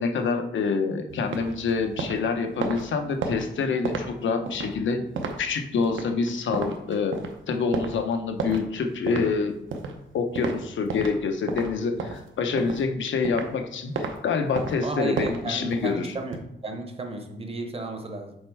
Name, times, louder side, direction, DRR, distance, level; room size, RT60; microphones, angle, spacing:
voice 1, 0.0-5.1 5.4-7.2 7.5-9.5 10.1-16.1, left 5 dB, 75° left, 6 dB, 0.8 m, -26 dB
sound 1, 1.1-11.2 11.5-13.6 13.9-14.1 14.5-16.4, right 4 dB, 85° right, 0.9 m, -33 dB
voice 2, 14.8-18.4, right 3 dB, 30° right, 4 dB, 0.8 m, -33 dB
6.5 x 4.4 x 4.7 m, 0.81 s
wide cardioid pair, 175°, 20 cm